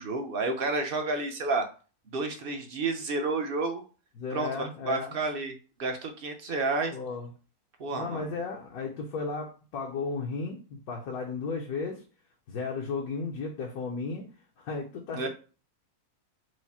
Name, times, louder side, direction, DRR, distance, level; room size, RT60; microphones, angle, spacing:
voice 1, 0.0-1.7 2.1-3.8 4.3-7.0 7.8-8.3 15.1-15.3, right 3 dB, 50° right, 5 dB, 0.7 m, -30 dB
voice 2, 4.2-5.1 6.9-7.3 7.9-12.0 12.5-14.3 14.6-15.3, left 4 dB, 75° left, 0 dB, 1.3 m, -34 dB
4.8 x 2.0 x 4.2 m, 0.35 s
omnidirectional pair, 1.6 m